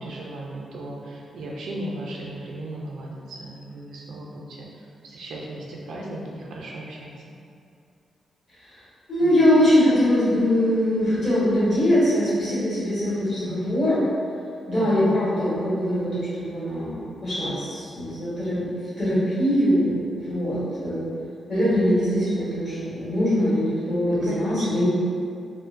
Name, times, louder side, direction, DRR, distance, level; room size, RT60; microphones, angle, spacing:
voice 1, 0.0-4.7 5.0-7.1 9.2-9.3 13.1-13.7 14.7-15.0 21.5-21.8 24.3-24.8, right 1 dB, 90° right, -3 dB, 0.4 m, -36 dB
voice 2, 9.1-14.0 14.7-21.1 21.5-24.8, equal, 45° left, -12 dB, 1.3 m, -22 dB
2.4 x 2.1 x 2.5 m, 2.4 s
cardioid pair, 115°, 0 cm